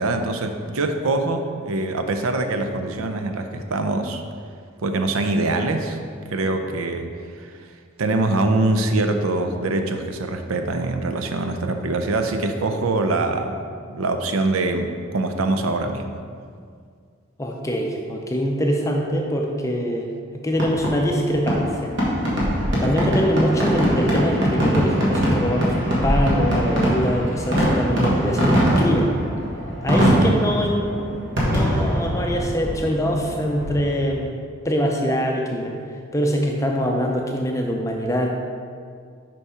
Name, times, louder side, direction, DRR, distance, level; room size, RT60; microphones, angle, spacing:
voice 1, 0.0-4.2 4.8-6.0 6.3-7.5 8.0-13.6 13.9-16.2 22.8-23.1 30.0-30.4, right 2 dB, 80° right, 6 dB, 0.5 m, -24 dB
voice 2, 17.4-20.1 20.4-21.9 22.8-29.1 29.8-34.3 34.6-35.8 36.1-38.3, equal, 15° left, 1 dB, 0.5 m, -23 dB
Fireworks, 20.5-34.1, equal, 55° right, 1.4 m, -22 dB
5.4 x 5.3 x 4.9 m, 2.1 s
head